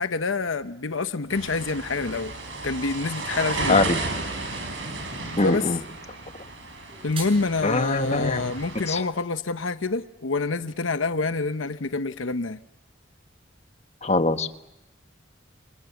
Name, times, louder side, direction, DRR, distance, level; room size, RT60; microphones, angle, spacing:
voice 1, 0.0-2.3 2.6-3.9 5.4-5.7 7.0-12.6, left 3 dB, 85° left, 1.0 m, -27 dB
sound 1, 1.3-9.0, right 2 dB, 70° right, 7.1 m, -33 dB
voice 2, 3.7-4.0 5.4-5.8 7.6-8.5 8.9-9.1 14.0-14.5, left 2 dB, 35° left, 1.3 m, -23 dB
sound 2, 6.7-7.7, right 4 dB, 30° right, 6.7 m, -39 dB
29.5 x 28.5 x 7.1 m
head